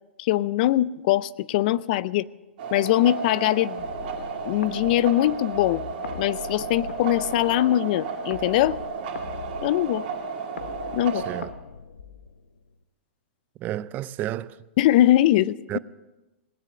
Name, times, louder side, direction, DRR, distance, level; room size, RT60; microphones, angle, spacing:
voice 1, 0.2-2.3 2.7-3.9 4.4-5.8 6.1-8.8 9.6-10.0 10.9-11.2 14.8-15.8, left 14 dB, 50° left, 0.5 m, -22 dB
sound 1, 2.6-11.4, right 5 dB, 55° right, 2.6 m, -33 dB
sound 2, 3.8-12.7, left 5 dB, 85° left, 1.0 m, -41 dB
voice 2, 11.1-11.5 13.6-14.6 15.7-15.8, right 13 dB, 30° right, 0.5 m, -31 dB
18.5 x 9.8 x 6.9 m
hypercardioid pair, 120°, 6 cm